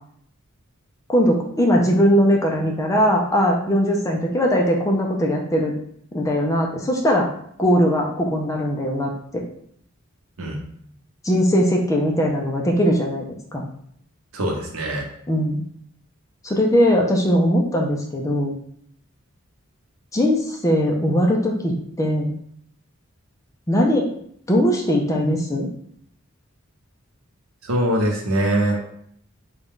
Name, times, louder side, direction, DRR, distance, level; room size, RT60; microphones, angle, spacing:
voice 1, 1.1-5.7 6.1-7.3 7.6-9.4 11.2-13.3 13.5-13.7 15.3-15.6 16.4-18.6 20.1-22.3 23.7-24.1 24.5-25.7, equal, 15° left, 0 dB, 0.4 m, -20 dB
voice 2, 14.3-15.1 27.6-28.9, right 1 dB, 80° right, 1 dB, 0.8 m, -22 dB
3.8 x 2.3 x 3.6 m, 0.67 s
head